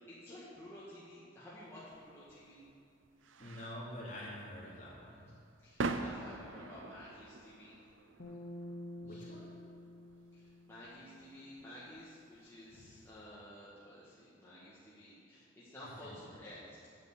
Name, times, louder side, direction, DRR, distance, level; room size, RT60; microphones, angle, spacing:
voice 1, 0.1-2.7 5.6-7.8 9.1-9.3 10.3-17.0, left 1 dB, 15° left, -10 dB, 1.9 m, -52 dB
sound 1, 1.9-13.2, right 3 dB, 70° right, 0.6 m, -46 dB
voice 2, 3.4-5.3 9.0-9.5 15.8-16.2, left 1 dB, 40° left, -6 dB, 3.1 m, -47 dB
sound 2, 8.2-11.5, left 1 dB, 90° left, 1.7 m, -49 dB
9.2 x 7.4 x 8.5 m, 2.6 s
head